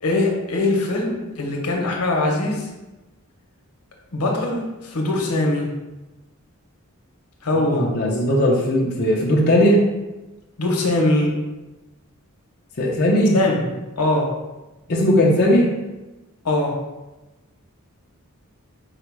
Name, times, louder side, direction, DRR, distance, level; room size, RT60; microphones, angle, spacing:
voice 1, 0.0-2.7 4.1-5.7 7.4-7.9 10.6-11.3 13.3-13.6 14.0-14.3 16.4-16.8, left 2 dB, 85° left, 0 dB, 0.9 m, -21 dB
voice 2, 7.6-9.8 12.8-13.4 14.9-15.7, equal, 45° left, -4 dB, 0.5 m, -18 dB
4.7 x 2.0 x 4.5 m, 1.1 s
head